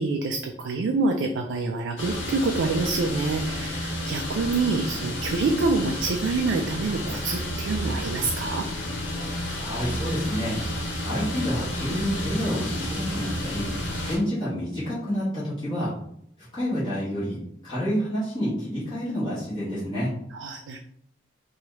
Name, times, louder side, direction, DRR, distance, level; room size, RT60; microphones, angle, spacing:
voice 1, 0.0-8.7 20.3-20.8, right 3 dB, 80° right, 3 dB, 0.3 m, -26 dB
sound 1, 2.0-14.2, left 1 dB, 85° left, 0.7 m, -31 dB
voice 2, 9.5-10.5 11.0-13.7 14.0-15.9 16.5-20.1, equal, 25° left, -11 dB, 1.1 m, -28 dB
2.9 x 2.3 x 3.0 m, 0.70 s
head